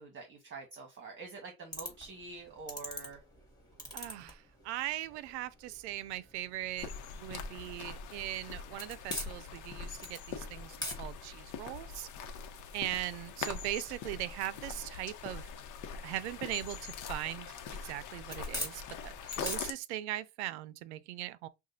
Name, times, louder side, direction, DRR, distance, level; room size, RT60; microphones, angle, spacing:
voice 1, 0.0-3.2, right 4 dB, 35° right, 1.5 m, -46 dB
sound 1, 1.7-19.5, left 1 dB, 10° left, 2.3 m, -47 dB
voice 2, 3.9-6.9 7.1-12.1 12.7-15.5 16.0-21.5, right 14 dB, 90° right, 0.5 m, -40 dB
sound 2, 6.8-19.7, left 6 dB, 65° left, 1.0 m, -43 dB
5.8 x 2.4 x 2.7 m
supercardioid pair, 85°, 33 cm